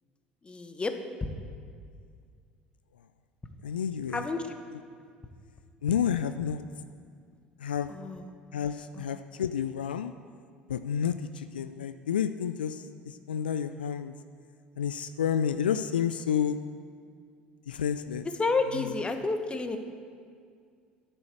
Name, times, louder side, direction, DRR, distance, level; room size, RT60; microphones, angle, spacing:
voice 1, 0.4-0.9 4.1-4.5 7.9-8.3 8.9-9.0 18.2-19.8, left 3 dB, 20° left, 7 dB, 1.3 m, -30 dB
voice 2, 3.6-4.3 5.8-6.6 7.6-7.9 8.5-10.1 10.7-14.2 14.8-16.6 17.7-18.3, left 8 dB, 80° left, 11 dB, 0.4 m, -30 dB
10.0 x 8.8 x 8.4 m, 2.2 s
figure-of-eight pair, 65°, 5 cm